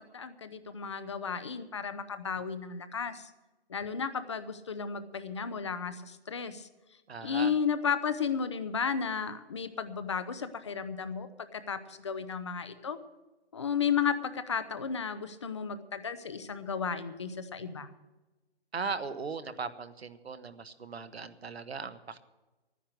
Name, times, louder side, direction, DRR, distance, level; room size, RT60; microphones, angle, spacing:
voice 1, 0.1-3.3 3.7-6.7 7.2-13.0 13.5-17.9, left 6 dB, 30° left, 12 dB, 0.7 m, -33 dB
voice 2, 7.1-7.5 18.7-22.2, right 5 dB, 75° right, 11 dB, 1.3 m, -38 dB
12.0 x 10.0 x 7.8 m, 1.1 s
hypercardioid pair, 165°, 32 cm